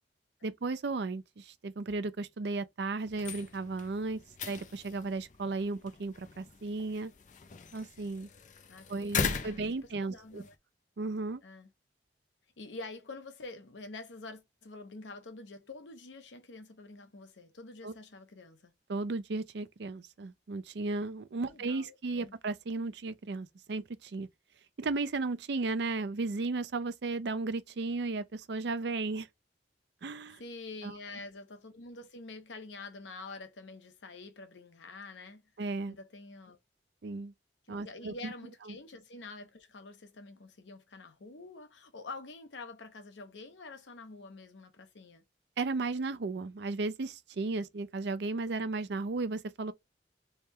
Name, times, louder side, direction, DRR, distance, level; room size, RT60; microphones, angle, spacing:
voice 1, 0.4-4.2 4.5-7.1 7.7-8.3 8.9-10.4 11.0-11.4 17.8-17.9 18.9-24.3 24.8-29.3 30.0-30.4 30.8-31.0 35.6-36.0 37.0-37.3 37.7-38.3 38.7-38.8 45.6-49.7, right 3 dB, 70° right, 0.5 m, -35 dB
sound 1, 3.1-10.6, left 5 dB, 45° left, 0.4 m, -40 dB
voice 2, 9.3-9.6 10.0-10.5 11.4-11.7 12.6-18.7 21.4-22.3 30.4-35.4 35.9-36.6 37.7-45.2, left 3 dB, 85° left, 0.7 m, -47 dB
3.4 x 2.2 x 4.3 m
head